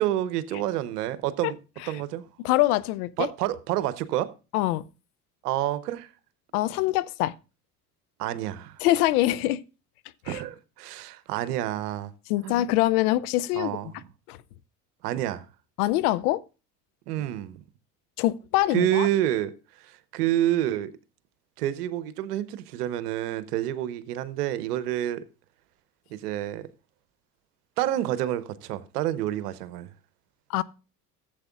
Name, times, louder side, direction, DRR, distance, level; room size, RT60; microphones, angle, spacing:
voice 1, 0.0-1.6 1.9-2.2 3.2-4.3 5.4-6.1 8.2-8.8 10.2-12.1 12.4-12.6 13.5-14.0 15.0-15.5 17.1-17.6 18.7-20.9 21.6-25.2 26.1-26.7 27.8-29.9, right 13 dB, 80° right, 0.8 m, -28 dB
voice 2, 2.4-3.3 4.5-4.8 6.5-7.3 8.8-9.6 10.3-10.4 12.3-13.8 14.3-14.4 15.8-16.4 18.2-19.1 30.5-30.6, left 16 dB, 75° left, 0.6 m, -24 dB
15.0 x 7.7 x 2.3 m
hypercardioid pair, 70°, 46 cm